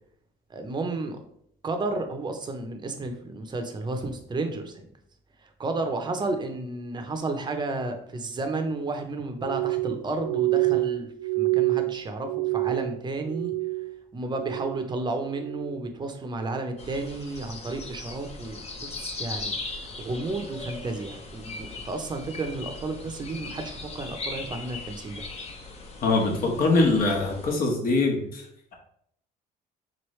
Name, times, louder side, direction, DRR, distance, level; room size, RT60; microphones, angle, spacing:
voice 1, 0.5-1.2 1.6-4.9 5.6-11.1 11.4-13.5 14.1-25.2, right 2 dB, 25° right, 5 dB, 0.7 m, -32 dB
Glass, 9.4-14.0 14.2-14.9 15.3-15.8 16.4-16.7, right 23 dB, 65° right, 0.5 m, -27 dB
sound 1, 16.8-27.5, left 3 dB, 40° left, 0.8 m, -39 dB
voice 2, 26.0-28.4, left 3 dB, 60° left, 1 dB, 1.2 m, -23 dB
4.0 x 3.1 x 3.1 m, 0.68 s
cardioid pair, 110°, 17 cm